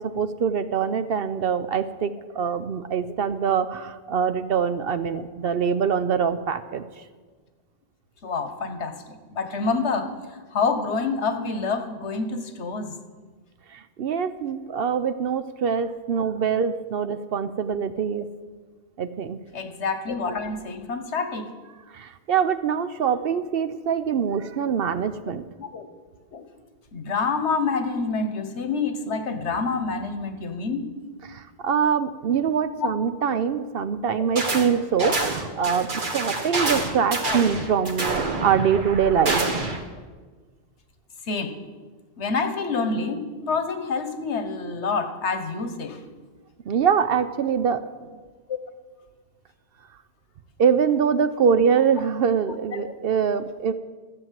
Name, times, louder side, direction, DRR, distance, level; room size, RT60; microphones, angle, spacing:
voice 1, 0.0-6.8 13.7-18.3 19.0-19.4 21.9-25.4 31.2-39.4 46.7-47.8 50.6-53.7, right 7 dB, 65° right, 11 dB, 0.8 m, -24 dB
voice 2, 8.2-9.0 9.3-10.1 10.5-12.9 19.5-21.5 25.6-25.9 26.3-26.4 26.9-30.9 33.3-33.4 34.3-34.4 35.0-35.2 35.6-35.7 37.2-37.4 41.3-41.6 42.2-46.0 52.7-52.8, left 4 dB, 90° left, 8 dB, 1.4 m, -27 dB
sound 1, 34.4-34.7 35.0-39.8, right 3 dB, 50° right, 1.6 m, -27 dB
14.0 x 7.7 x 7.5 m, 1.4 s
omnidirectional pair, 1.1 m